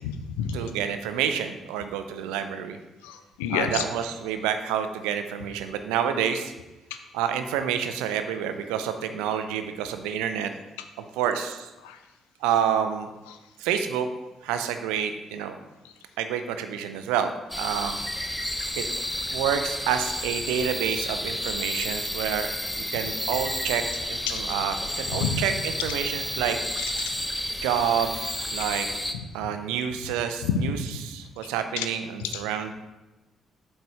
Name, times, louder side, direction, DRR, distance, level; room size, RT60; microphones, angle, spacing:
voice 1, 0.0-0.6 3.0-3.8 6.9-7.0 11.8-12.0 24.3-24.4 25.1-25.4 26.8-27.1 30.4-30.7 31.8-31.9 32.3-32.4, left 7 dB, 70° left, 8 dB, 0.5 m, -29 dB
voice 2, 0.5-2.8 3.5-6.5 7.1-10.5 11.0-11.7 12.4-13.1 13.6-14.1 14.4-15.6 16.2-18.0 18.8-18.9 19.3-23.8 24.1-26.6 27.6-28.9 29.3-30.8 31.0-32.7, right 8 dB, 70° right, 8 dB, 0.5 m, -28 dB
sound 1, 17.5-29.1, equal, 5° left, 0.7 m, -31 dB
7.9 x 4.2 x 4.7 m, 1.1 s
figure-of-eight pair, 40°, 0 cm